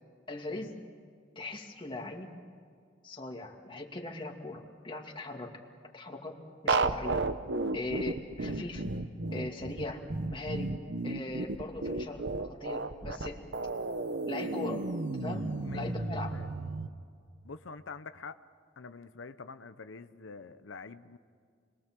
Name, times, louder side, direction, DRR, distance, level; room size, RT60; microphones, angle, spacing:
voice 1, 0.3-0.8 1.4-2.3 3.0-5.5 5.9-7.2 7.7-8.8 9.3-10.7 11.0-13.4 14.3-16.4, left 2 dB, 25° left, 2 dB, 2.4 m, -40 dB
sound 1, 6.7-16.9, right 3 dB, 65° right, 0.9 m, -33 dB
voice 2, 17.4-18.4 18.8-21.2, left 4 dB, 85° left, 11 dB, 0.7 m, -46 dB
29.5 x 21.5 x 7.6 m, 2.2 s
head